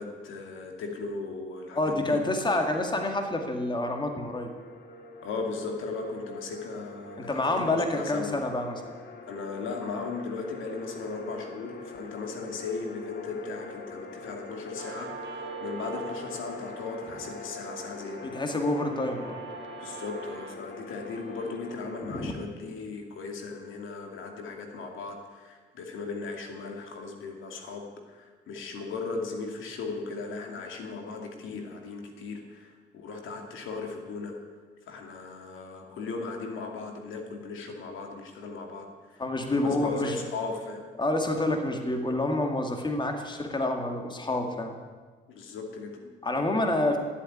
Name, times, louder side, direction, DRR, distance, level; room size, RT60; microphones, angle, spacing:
voice 1, 0.0-2.2 5.2-8.4 9.3-18.3 19.8-34.3 34.9-39.2 39.5-40.9 45.3-46.1, left 4 dB, 80° left, 3 dB, 2.4 m, -37 dB
voice 2, 1.7-4.5 7.2-8.9 18.2-19.4 22.0-22.3 39.2-40.2 41.0-44.8 46.2-47.0, left 2 dB, 25° left, 4 dB, 2.1 m, -28 dB
sound 1, 2.3-22.2, left 3 dB, 55° left, 2.3 m, -44 dB
Guitar, 14.8-21.8, right 9 dB, 65° right, 1.5 m, -45 dB
14.0 x 8.3 x 9.4 m, 1.5 s
cardioid pair, 90°, 20 cm